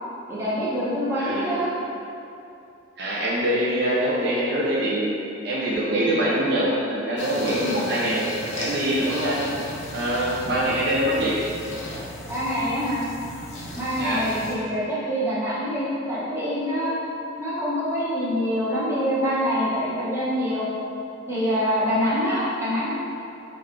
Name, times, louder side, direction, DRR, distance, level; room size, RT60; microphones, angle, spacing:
voice 1, 0.3-1.7 7.6-7.8 12.3-13.0 13.7-17.0 17.4-20.7 21.3-22.9, equal, 15° right, -11 dB, 0.7 m, -25 dB
voice 2, 1.2-1.6 3.0-5.2 5.4-8.3 8.5-9.4 9.9-11.4 14.0-14.3, right 1 dB, 55° right, -6 dB, 0.4 m, -24 dB
sound 1, 7.2-14.5, left 1 dB, 60° left, 0.6 m, -36 dB
3.3 x 2.2 x 3.6 m, 2.6 s
head